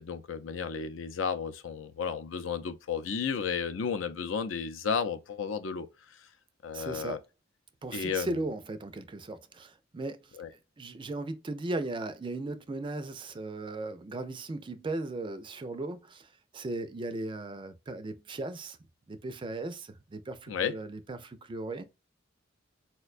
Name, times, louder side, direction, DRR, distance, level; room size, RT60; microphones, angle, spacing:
voice 1, 0.0-6.2 6.6-7.2 7.9-8.4 10.4-10.5 20.5-20.8, left 6 dB, 85° left, 0.5 m, -33 dB
voice 2, 6.7-7.2 7.8-10.2 10.8-18.8 19.1-21.9, right 2 dB, 25° right, 0.4 m, -37 dB
4.2 x 2.2 x 2.4 m
head